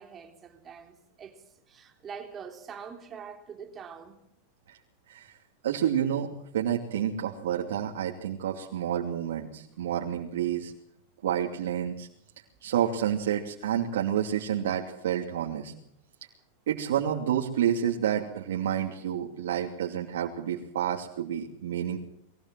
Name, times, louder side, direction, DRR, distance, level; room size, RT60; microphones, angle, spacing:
voice 1, 0.0-4.2, right 6 dB, 25° right, 3.4 m, -44 dB
voice 2, 5.6-10.7 11.2-12.1 12.6-15.7 16.7-22.0, right 9 dB, 90° right, 2.8 m, -29 dB
22.0 x 17.0 x 7.6 m
supercardioid pair, 140°, 0 cm